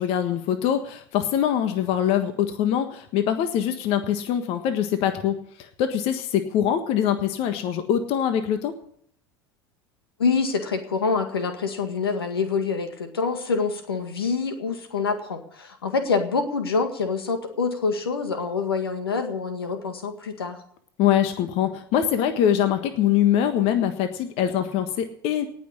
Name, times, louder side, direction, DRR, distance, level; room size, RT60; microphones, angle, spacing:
voice 1, 0.0-8.7 21.0-25.5, left 10 dB, 50° left, 8 dB, 1.5 m, -23 dB
voice 2, 10.2-20.6, left 4 dB, 80° left, 7 dB, 1.8 m, -26 dB
18.5 x 6.3 x 9.7 m, 0.65 s
figure-of-eight pair, 75°, 12 cm